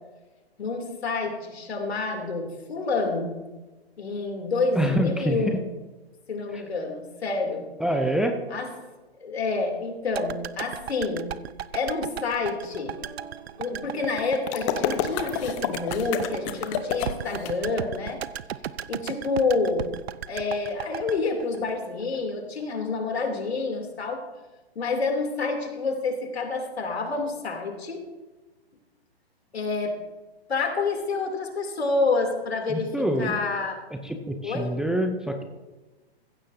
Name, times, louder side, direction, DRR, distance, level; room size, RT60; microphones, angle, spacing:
voice 1, 0.6-3.4 4.0-5.6 6.3-7.7 8.5-8.7 9.2-11.3 11.7-13.0 13.6-18.2 18.9-19.9 20.3-24.2 24.7-28.0 29.5-30.0 30.5-32.9 33.2-33.8 34.4-34.7, left 3 dB, 75° left, 3 dB, 3.1 m, -28 dB
voice 2, 4.7-5.5 6.5-6.6 7.8-8.4 32.7-33.3 34.0-35.4, right 1 dB, ahead, 4 dB, 0.5 m, -26 dB
sound 1, 10.1-22.3 22.6-22.7, right 9 dB, 75° right, 0.6 m, -36 dB
sound 2, 12.7-18.1, right 4 dB, 55° right, 4.5 m, -47 dB
sound 3, 14.5-17.5, left 10 dB, 30° left, 1.0 m, -29 dB
15.5 x 14.0 x 2.7 m, 1.2 s
hypercardioid pair, 130°, 32 cm